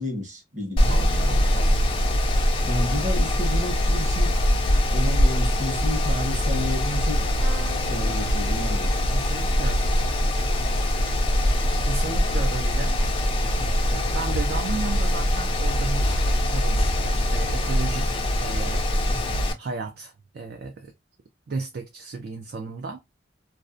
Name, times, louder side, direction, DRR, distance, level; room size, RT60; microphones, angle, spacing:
voice 1, 0.0-1.8 2.6-4.4 4.9-7.3 7.8-8.9 13.4-13.7 19.1-19.4, left 1 dB, 40° right, 1.0 m, -32 dB
Mechanical fan, 0.8-19.5, left 1 dB, 30° left, 0.4 m, -23 dB
voice 2, 0.8-2.0 9.1-9.9 11.8-13.0 13.9-16.2 16.5-18.9 19.6-20.9 21.5-23.0, right 4 dB, 55° right, 0.4 m, -34 dB
sound 1, 7.4-15.2 15.7-16.2 17.5-17.7 17.9-18.0, right 1 dB, 90° right, 0.7 m, -48 dB
2.5 x 2.0 x 2.4 m
head